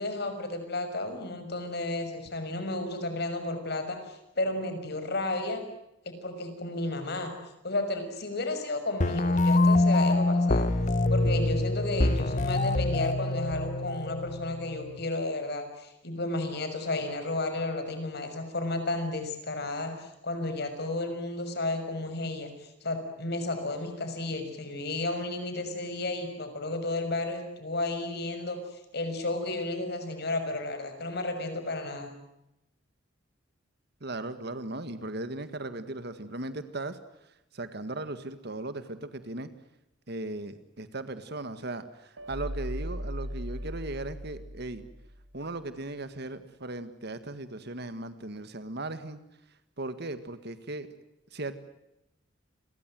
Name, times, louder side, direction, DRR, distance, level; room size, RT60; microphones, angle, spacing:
voice 1, 0.0-5.6 6.0-7.3 7.6-10.7 11.1-22.5 22.8-28.6 28.9-32.1, left 2 dB, 60° left, 8 dB, 6.2 m, -32 dB
sound 1, 9.0-15.0, left 2 dB, 40° left, 1.3 m, -25 dB
voice 2, 34.0-37.0 37.5-39.5 40.1-44.9 45.3-49.2 49.8-50.9 51.3-51.6, right 2 dB, 60° right, 11 dB, 1.8 m, -37 dB
sound 2, 42.2-45.3, equal, 90° right, 2.7 m, -38 dB
30.0 x 22.5 x 7.7 m, 0.87 s
head